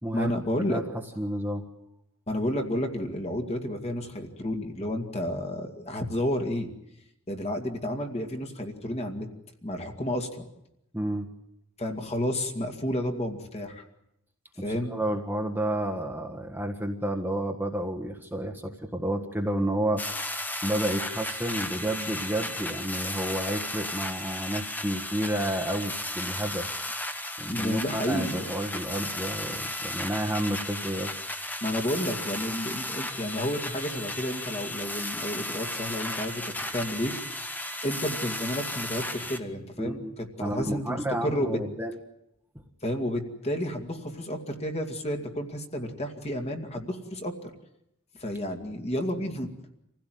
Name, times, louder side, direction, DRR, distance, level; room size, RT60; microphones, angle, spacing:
voice 1, 0.1-0.8 2.3-6.7 7.3-9.3 9.6-10.4 11.8-13.8 14.6-14.9 27.5-28.5 31.6-36.4 36.7-37.1 37.8-41.6 42.8-47.5 48.2-49.5, equal, 30° left, 4 dB, 2.3 m, -31 dB
voice 2, 1.2-1.6 10.9-11.3 14.7-20.0 20.6-26.7 27.4-31.2 39.8-40.1 40.4-42.0, right 1 dB, 10° right, 2 dB, 1.6 m, -30 dB
sound 1, 20.0-39.4, left 1 dB, 10° left, 1.5 m, -35 dB
26.5 x 16.0 x 9.3 m, 0.81 s
head